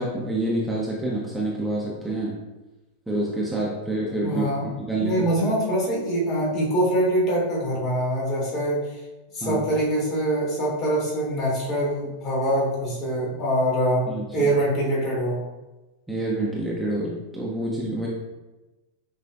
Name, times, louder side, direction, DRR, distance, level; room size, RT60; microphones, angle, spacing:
voice 1, 0.0-2.4 3.1-4.4 4.8-5.2 9.4-9.6 14.1-14.5 16.1-18.1, right 1 dB, 5° right, -5 dB, 0.6 m, -27 dB
voice 2, 4.2-4.7 5.0-9.0 9.3-15.4, right 1 dB, 35° left, -4 dB, 1.4 m, -24 dB
6.0 x 2.5 x 2.3 m, 1.1 s
figure-of-eight pair, 90°, 0 cm